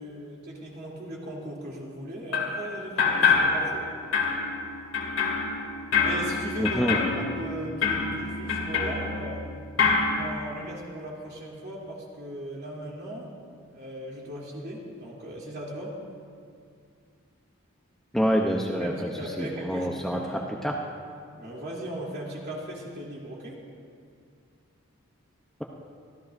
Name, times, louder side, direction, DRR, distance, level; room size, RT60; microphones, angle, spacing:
voice 1, 0.0-3.9 6.0-9.4 10.1-13.3 13.7-16.0 18.8-20.5 21.4-23.6, right 1 dB, 50° right, -4 dB, 3.1 m, -37 dB
sound 1, 2.3-2.6 3.0-3.9 4.1-9.5 9.8-10.1, left 5 dB, 75° left, 2.4 m, -26 dB
voice 2, 6.6-7.0 18.1-18.9 19.4-20.8, equal, ahead, -1 dB, 0.7 m, -26 dB
25.0 x 14.5 x 2.6 m, 2.3 s
head